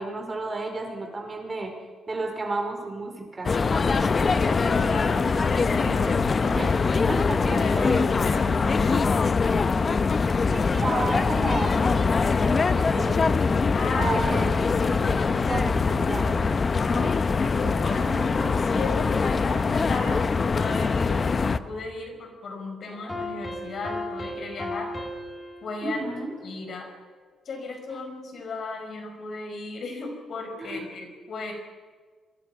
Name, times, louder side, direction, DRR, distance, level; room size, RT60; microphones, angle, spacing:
voice 1, 0.0-1.7 2.1-3.5 6.5-6.8 7.1-8.0 10.5-13.2 14.0-16.3 25.8-26.3 30.6-30.8, right 2 dB, 25° right, 3 dB, 4.9 m, -32 dB
sound 1, 3.4-21.6, left 4 dB, 35° left, 0.8 m, -23 dB
voice 2, 3.9-6.7 7.3-9.1 13.7-14.2 16.8-17.1 17.4-24.9 25.6-26.0 26.4-26.9 27.5-31.5, left 3 dB, 55° left, 4 dB, 5.5 m, -35 dB
sound 2, 22.9-27.1, left 1 dB, 15° left, 3.8 m, -37 dB
28.0 x 23.0 x 6.0 m, 1.5 s
cardioid pair, 120°, 0 cm